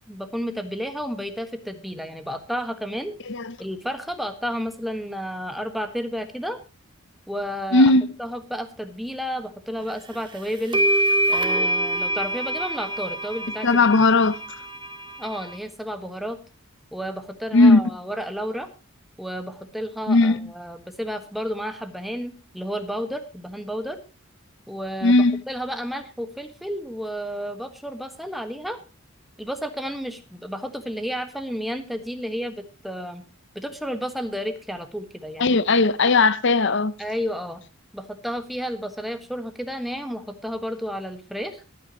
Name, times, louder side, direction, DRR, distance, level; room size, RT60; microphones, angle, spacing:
voice 1, 0.1-3.1 3.6-6.6 7.3-7.9 8.2-10.8 11.3-13.7 15.2-16.4 16.9-18.7 19.2-24.0 24.7-28.8 29.4-33.2 33.5-35.6 36.0-36.1 37.0-37.6 37.9-41.6, equal, ahead, 1.4 m, -31 dB
voice 2, 7.7-8.1 13.6-14.4 17.5-17.8 20.1-20.5 25.0-25.4 35.4-36.9, left 3 dB, 55° left, 0.6 m, -17 dB
sound 1, 10.1-10.2 10.7-15.6, right 1 dB, 20° right, 1.8 m, -25 dB
22.0 x 9.4 x 2.9 m
head